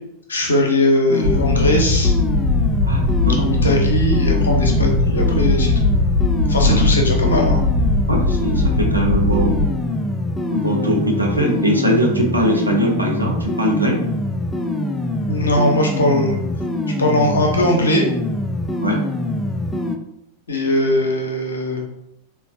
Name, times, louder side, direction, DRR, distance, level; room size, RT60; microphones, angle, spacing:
voice 1, 0.3-2.1 3.4-5.8 6.5-7.6 15.3-16.4 17.0-18.1 20.5-21.8, left 1 dB, 70° left, 1 dB, 0.7 m, -19 dB
sound 1, 1.1-20.0, left 1 dB, 10° left, 0.3 m, -24 dB
sound 2, 1.2-9.7, left 2 dB, 40° right, 0.6 m, -19 dB
voice 2, 2.9-3.5 6.7-6.9 8.1-9.6 10.5-14.0 18.8-19.0, right 1 dB, 85° right, 0 dB, 0.6 m, -20 dB
3.8 x 2.1 x 2.5 m, 0.81 s
figure-of-eight pair, 90°, 0 cm